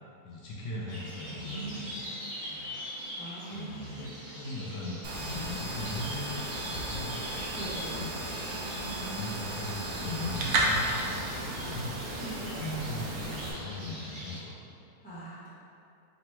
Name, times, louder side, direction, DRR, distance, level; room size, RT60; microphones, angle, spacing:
voice 1, 0.2-2.1 2.5-2.8 3.5-7.2 7.5-8.3 9.0-12.0 12.5-14.9, left 2 dB, 75° left, -4 dB, 1.1 m, -39 dB
sound 1, 0.9-14.4, equal, 50° right, 1.3 m, -43 dB
voice 2, 1.3-1.9 3.1-4.0 7.6-8.0 8.7-9.2 12.2-12.6 15.0-15.5, right 2 dB, 5° left, -11 dB, 0.6 m, -42 dB
sound 2, 5.0-13.5, right 2 dB, 70° right, 1.1 m, -34 dB
3.2 x 3.0 x 4.3 m, 2.5 s
omnidirectional pair, 1.9 m